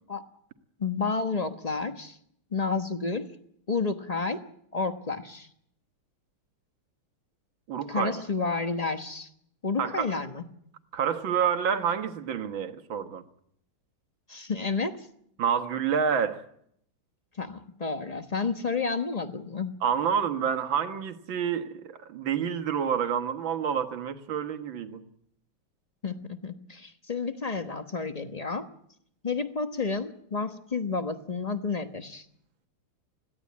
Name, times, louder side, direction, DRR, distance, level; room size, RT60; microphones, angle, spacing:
voice 1, 0.8-2.2 2.5-3.3 3.7-4.4 4.7-5.5 7.9-9.3 9.6-10.4 14.3-15.1 17.4-19.8 26.0-28.7 29.2-32.2, left 4 dB, 30° left, 8 dB, 0.7 m, -30 dB
voice 2, 7.7-8.1 9.8-10.1 10.9-13.2 15.4-16.5 19.8-25.0, right 7 dB, 65° right, 8 dB, 2.1 m, -28 dB
21.5 x 17.0 x 8.4 m, 0.70 s
omnidirectional pair, 2.4 m